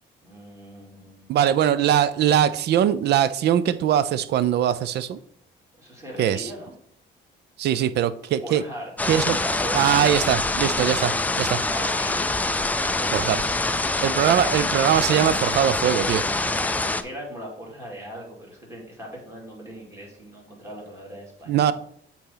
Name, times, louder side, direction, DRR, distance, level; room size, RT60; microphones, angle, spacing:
voice 1, 0.2-1.5 5.8-6.7 8.4-8.9 9.4-10.2 11.7-12.4 12.8-13.8 14.1-14.6 16.3-21.7, equal, 15° right, 2.4 m, -39 dB
voice 2, 1.3-5.2 6.2-6.5 7.6-8.6 9.1-9.4 9.7-11.6 13.1-13.4 14.0-16.2 21.5-21.7, right 10 dB, 60° right, 0.5 m, -21 dB
sound 1, 9.0-17.0, left 2 dB, 10° left, 0.3 m, -25 dB
8.4 x 4.3 x 3.9 m
cardioid pair, 155°, 20 cm